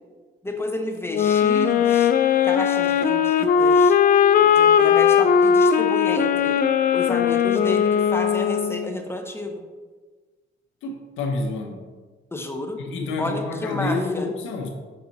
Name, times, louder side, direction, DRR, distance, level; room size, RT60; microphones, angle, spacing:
voice 1, 0.4-2.1 2.4-4.0 4.4-6.6 6.9-9.6 12.3-12.8 13.2-14.3, left 1 dB, 10° left, 4 dB, 0.9 m, -31 dB
sound 1, 1.1-8.9, left 7 dB, 45° left, 0.4 m, -18 dB
voice 2, 10.8-11.9 12.8-14.7, left 3 dB, 85° left, 2 dB, 0.9 m, -28 dB
6.6 x 4.3 x 4.0 m, 1.4 s
cardioid pair, 90°, 20 cm